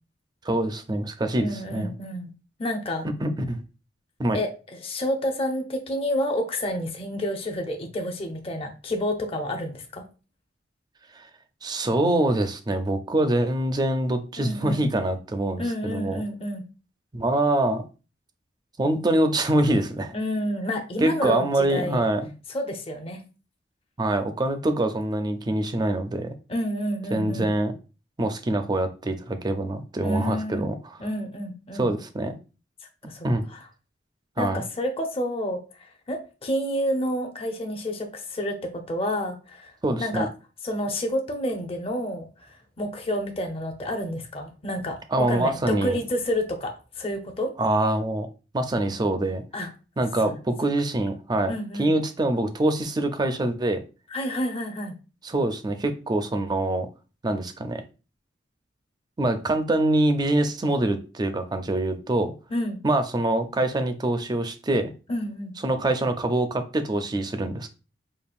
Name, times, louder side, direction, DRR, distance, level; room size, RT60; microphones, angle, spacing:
voice 1, 0.4-1.9 3.2-3.6 4.2-4.4 11.2-11.3 11.6-16.2 17.1-17.8 18.8-20.1 21.0-22.3 24.0-26.3 27.1-27.7 28.2-30.8 31.7-32.4 33.2-33.4 34.4-34.6 39.8-40.3 45.1-46.0 47.6-48.3 48.5-49.4 50.0-51.5 51.8-53.8 55.2-56.9 57.2-57.8 59.2-62.3 62.8-64.9 65.6-67.7, right 1 dB, 25° right, 8 dB, 0.4 m, -24 dB
voice 2, 1.4-2.3 2.6-3.1 4.3-10.0 14.4-14.8 15.6-16.6 20.1-22.0 22.5-23.2 26.5-27.5 30.0-30.6 31.0-31.9 33.0-33.6 34.4-40.3 40.6-47.5 49.5-49.7 50.2-50.3 51.5-51.9 54.1-54.9 62.5-62.8 65.1-65.5, equal, 30° left, 3 dB, 0.6 m, -29 dB
5.2 x 2.4 x 2.4 m, 0.33 s
head